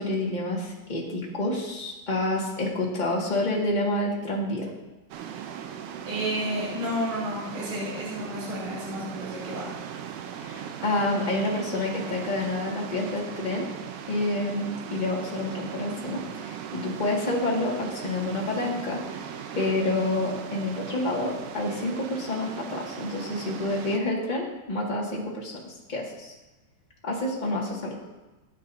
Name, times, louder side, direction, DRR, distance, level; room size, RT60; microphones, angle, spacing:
voice 1, 0.0-4.7 10.4-13.7 14.1-19.0 19.5-26.3 27.0-28.0, left 2 dB, 20° left, -3 dB, 1.5 m, -28 dB
sound 1, 5.1-24.0, right 8 dB, 80° right, 2.2 m, -38 dB
voice 2, 6.1-9.7, equal, 55° right, -7 dB, 4.4 m, -31 dB
18.5 x 9.1 x 2.8 m, 1.1 s
omnidirectional pair, 3.7 m